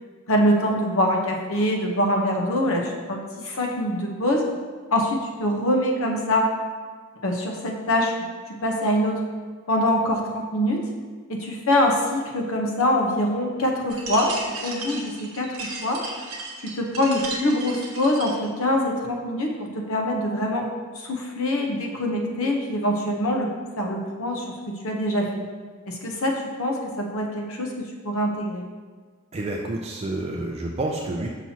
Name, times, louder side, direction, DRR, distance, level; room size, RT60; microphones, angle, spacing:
voice 1, 0.3-4.4 4.9-6.5 7.2-8.1 8.6-9.2 9.7-10.8 11.3-14.3 14.6-16.0 16.6-19.5 19.9-20.7 20.9-23.5 23.8-24.5 24.8-25.4 25.9-28.6, left 1 dB, 70° left, 1 dB, 0.9 m, -24 dB
sound 1, 13.9-18.5, right 3 dB, 75° right, 0.9 m, -35 dB
voice 2, 29.3-31.3, right 2 dB, 30° right, 0 dB, 0.4 m, -29 dB
6.0 x 5.7 x 2.8 m, 1.5 s
head